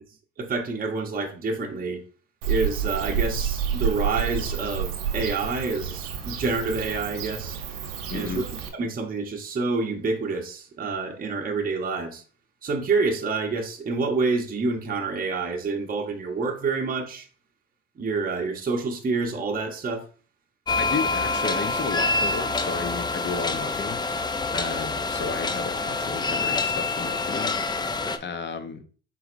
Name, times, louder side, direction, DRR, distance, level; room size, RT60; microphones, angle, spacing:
voice 1, 0.4-2.0 2.5-7.6 8.1-8.4 8.7-12.2 12.6-17.3 18.0-20.0, right 4 dB, 25° right, 0.8 m, -28 dB
Bird / Cricket, 2.4-8.7, right 7 dB, 85° right, 0.9 m, -29 dB
voice 2, 8.1-8.4 20.8-24.0 24.5-27.6 28.2-28.8, left 5 dB, 35° left, 0.8 m, -33 dB
sound 1, 20.7-28.2, left 3 dB, 15° left, 0.4 m, -26 dB
4.2 x 4.0 x 2.5 m
supercardioid pair, 75°, 33 cm